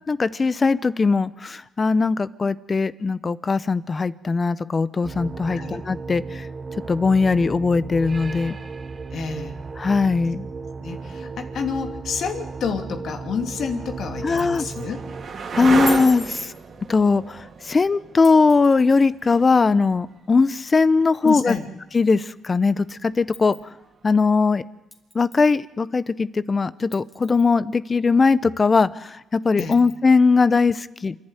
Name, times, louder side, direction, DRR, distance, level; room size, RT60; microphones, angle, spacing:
voice 1, 0.1-6.5 6.9-8.6 9.8-10.5 14.2-14.6 15.5-16.5 16.9-21.6 21.9-23.6 24.0-24.6 25.1-31.2, left 4 dB, 30° left, 16 dB, 0.8 m, -20 dB
sound 1, 5.0-15.2, right 4 dB, 35° right, 1.6 m, -35 dB
voice 2, 5.5-5.8 9.1-9.6 10.8-15.0 21.2-21.7 29.6-29.8, left 6 dB, 65° left, 4 dB, 2.7 m, -29 dB
sound 2, 13.4-21.0 23.3-23.9, right 5 dB, 55° right, 2.7 m, -33 dB
sound 3, 14.2-14.9 15.9-16.5 18.2-19.1 20.6-20.7 21.3-21.6 22.3-22.4 23.3-23.7 24.9-25.6 26.0-26.1 26.9-27.6 28.1-28.2 28.6-28.7 29.6-30.0, equal, ahead, 2.9 m, -38 dB
27.5 x 11.0 x 9.1 m, 1.0 s
cardioid pair, 90°, 0 cm